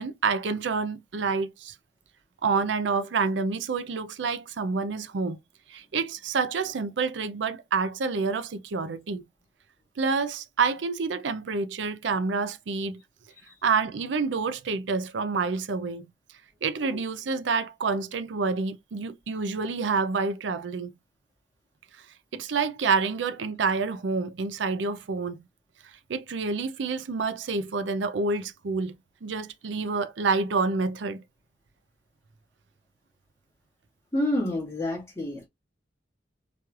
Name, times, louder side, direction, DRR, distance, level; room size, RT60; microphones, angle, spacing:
voice 1, 0.0-1.7 2.4-5.4 5.7-9.2 10.0-13.0 13.6-16.1 16.6-20.9 22.3-25.4 26.1-28.9 29.2-31.2, right 4 dB, 75° right, 0.5 m, -28 dB
voice 2, 34.1-35.5, left 1 dB, 15° left, 2.0 m, -28 dB
4.6 x 3.0 x 2.4 m
head